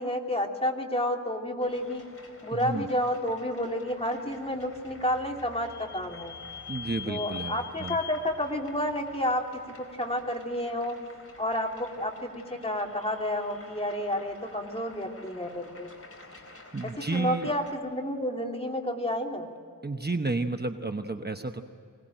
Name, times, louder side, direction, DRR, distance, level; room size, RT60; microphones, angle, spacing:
voice 1, 0.0-2.0 2.4-6.3 7.1-11.0 11.4-15.9 16.8-19.5, left 1 dB, 20° left, 1 dB, 3.0 m, -30 dB
sound 1, 1.6-17.7, left 2 dB, 45° left, 4.1 m, -51 dB
voice 2, 2.5-2.9 6.7-8.0 16.7-17.5 19.8-21.6, right 3 dB, 30° right, 6 dB, 1.0 m, -31 dB
Vehicle / Squeak, 4.3-9.9, left 7 dB, 60° left, 4.3 m, -44 dB
25.0 x 19.0 x 9.1 m, 2.5 s
wide cardioid pair, 80°, 33 cm